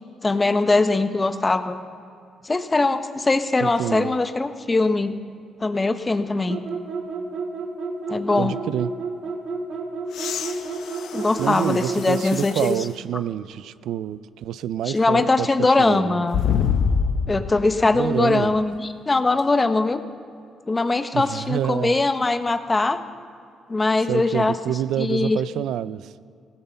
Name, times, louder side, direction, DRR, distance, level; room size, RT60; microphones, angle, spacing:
voice 1, 0.2-1.8 2.4-5.2 5.6-6.6 8.1-8.6 11.1-12.8 14.8-16.4 17.3-20.0 20.7-23.0 23.7-24.6 25.0-25.4, left 3 dB, 25° left, 10 dB, 0.9 m, -21 dB
voice 2, 3.6-4.1 8.4-8.9 11.4-15.5 15.8-16.1 17.9-18.6 21.1-22.0 24.1-26.1, right 10 dB, 80° right, 16 dB, 0.3 m, -27 dB
sound 1, 6.5-12.3, right 4 dB, 65° right, 1.9 m, -30 dB
sound 2, 10.1-12.9 13.5-13.6 16.3-17.5 19.4-19.5, left 6 dB, 75° left, 0.9 m, -26 dB
16.5 x 9.7 x 6.9 m, 2.5 s
cardioid pair, 90°, 0 cm